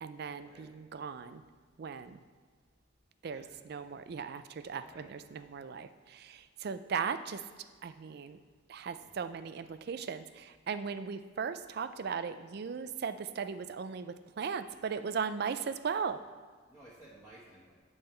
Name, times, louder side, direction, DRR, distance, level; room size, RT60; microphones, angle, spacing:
voice 1, 0.0-1.4 1.8-2.2 3.2-5.9 6.6-7.4 7.8-8.4 8.7-10.2 10.7-16.2, right 6 dB, 55° right, 12 dB, 0.4 m, -37 dB
voice 2, 3.3-3.8 4.8-5.1 9.0-9.2 16.7-17.8, right 1 dB, ahead, -11 dB, 1.3 m, -56 dB
9.6 x 5.4 x 4.4 m, 1.5 s
head